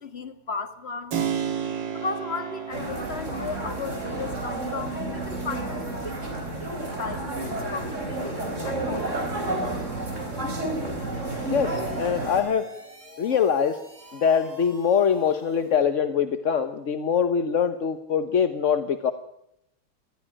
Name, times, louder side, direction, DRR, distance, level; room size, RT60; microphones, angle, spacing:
voice 1, 0.0-1.4 1.9-9.3, left 4 dB, 30° left, 9 dB, 1.9 m, -36 dB
Keyboard (musical), 1.1-9.7, right 8 dB, 60° right, 2.3 m, -36 dB
sound 1, 2.7-12.4, right 2 dB, 35° right, 4.4 m, -31 dB
sound 2, 11.1-15.9, right 1 dB, 20° right, 3.2 m, -48 dB
voice 2, 11.5-12.7 13.2-13.8 14.1-19.1, left 7 dB, 45° left, 10 dB, 1.1 m, -23 dB
21.0 x 15.0 x 8.7 m, 0.78 s
omnidirectional pair, 2.3 m